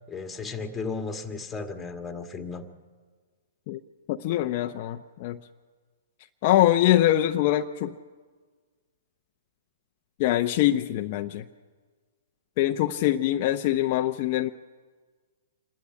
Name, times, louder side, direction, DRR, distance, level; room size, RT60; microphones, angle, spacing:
voice 1, 0.1-2.6, left 4 dB, 10° left, 5 dB, 1.8 m, -34 dB
voice 2, 4.1-5.4 6.4-7.9 10.2-11.4 12.6-14.5, left 13 dB, 45° left, 5 dB, 0.7 m, -23 dB
26.0 x 11.5 x 9.9 m, 1.5 s
hypercardioid pair, 140°, 0 cm